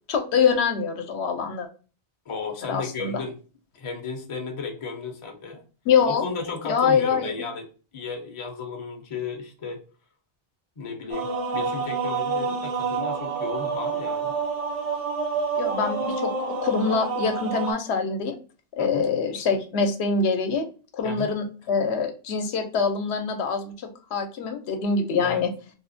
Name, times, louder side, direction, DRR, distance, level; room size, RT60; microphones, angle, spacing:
voice 1, 0.1-1.7 2.7-3.2 5.9-6.2 6.6-7.3 15.6-18.4 18.8-20.6 20.9-23.7 24.1-25.5, left 5 dB, 85° left, 5 dB, 0.8 m, -24 dB
voice 2, 2.3-3.4 3.8-5.6 6.1-7.7 7.9-9.8 10.8-14.3 18.8-19.1 21.0-21.3 25.2-25.4, left 4 dB, 40° left, 3 dB, 0.5 m, -34 dB
sound 1, 11.1-17.7, right 4 dB, 50° right, 0.5 m, -28 dB
2.8 x 2.1 x 2.5 m, 0.37 s
omnidirectional pair, 1.1 m